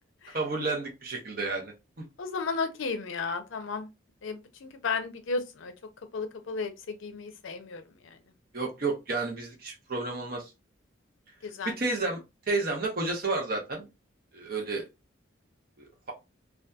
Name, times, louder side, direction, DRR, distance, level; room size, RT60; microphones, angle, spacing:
voice 1, 0.3-2.1 8.5-10.5 11.6-12.2 12.5-13.9 14.3-14.8 15.8-16.1, right 3 dB, 45° right, 0.8 m, -31 dB
voice 2, 2.2-3.9 4.2-5.7 6.1-7.8 11.4-11.7, left 4 dB, 75° left, 0.5 m, -33 dB
2.7 x 2.3 x 2.2 m
head